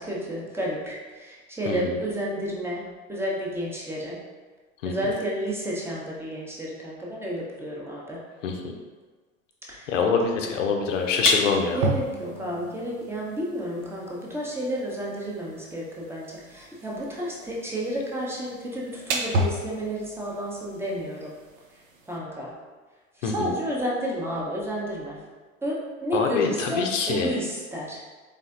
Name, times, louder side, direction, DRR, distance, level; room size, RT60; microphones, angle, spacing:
voice 1, 0.0-4.2 4.8-8.2 9.7-9.9 11.7-21.3 22.1-22.5 23.2-25.2 25.6-28.0, equal, 5° right, -4 dB, 0.8 m, -31 dB
voice 2, 9.9-11.8 23.2-23.5 26.1-27.3, left 5 dB, 65° left, 2 dB, 0.7 m, -24 dB
sound 1, 10.9-22.2, right 2 dB, 70° right, 0.6 m, -34 dB
4.2 x 3.4 x 2.5 m, 1.4 s
figure-of-eight pair, 75°, 41 cm